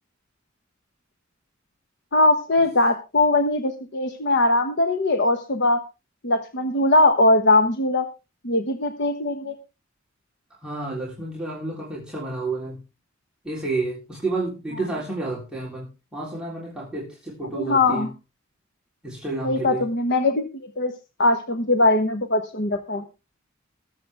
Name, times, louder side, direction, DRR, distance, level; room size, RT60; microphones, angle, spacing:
voice 1, 2.1-5.8 6.2-8.1 8.4-9.6 17.5-18.1 19.4-20.5 20.8-20.9 21.2-23.0, left 2 dB, 60° left, 7 dB, 1.2 m, -20 dB
voice 2, 10.6-12.8 13.4-18.1 19.0-19.8, right 2 dB, 5° right, -6 dB, 3.5 m, -30 dB
21.5 x 7.7 x 3.5 m, 0.29 s
head